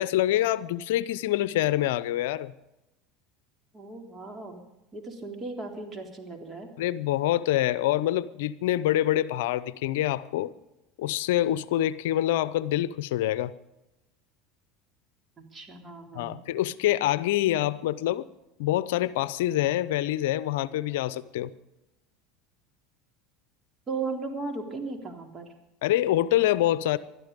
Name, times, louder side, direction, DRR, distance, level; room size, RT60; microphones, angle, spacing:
voice 1, 0.0-2.5 6.8-10.5 11.0-13.5 16.1-18.2 18.6-21.5 25.8-27.0, left 13 dB, 75° left, 17 dB, 0.6 m, -26 dB
voice 2, 3.7-4.7 4.9-6.7 15.4-16.4 23.9-25.5, right 3 dB, 30° right, 3 dB, 3.6 m, -36 dB
20.0 x 12.5 x 5.2 m, 0.94 s
hypercardioid pair, 90°, 0 cm